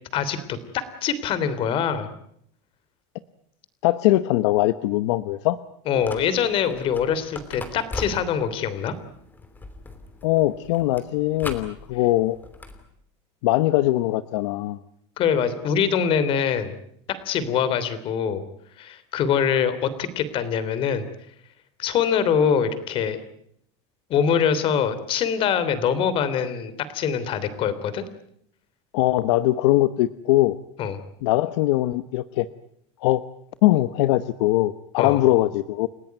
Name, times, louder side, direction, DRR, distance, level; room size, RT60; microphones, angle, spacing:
voice 1, 0.1-2.1 5.9-8.9 15.2-16.7 17.1-18.4 18.8-21.1 21.8-23.2 24.1-28.0 30.8-31.0 35.0-35.2, left 7 dB, 35° left, 14 dB, 3.1 m, -24 dB
voice 2, 3.8-5.6 10.2-12.4 13.4-14.8 28.9-30.5 31.2-32.5 33.0-33.2 33.6-35.9, left 16 dB, 70° left, 13 dB, 1.0 m, -21 dB
sound 1, 6.0-12.8, left 2 dB, 10° left, 3.0 m, -40 dB
30.0 x 17.0 x 9.4 m, 0.69 s
supercardioid pair, 160°, 15 cm